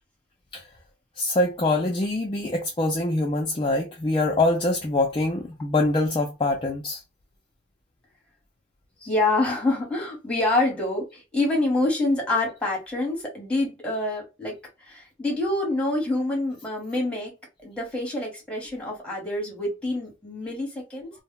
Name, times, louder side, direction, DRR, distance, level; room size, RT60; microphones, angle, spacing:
voice 1, 1.2-7.0, left 2 dB, 25° left, 0.3 m, -24 dB
voice 2, 9.0-17.3 17.6-21.1, left 2 dB, 5° left, 0.9 m, -26 dB
2.1 x 2.0 x 3.6 m
head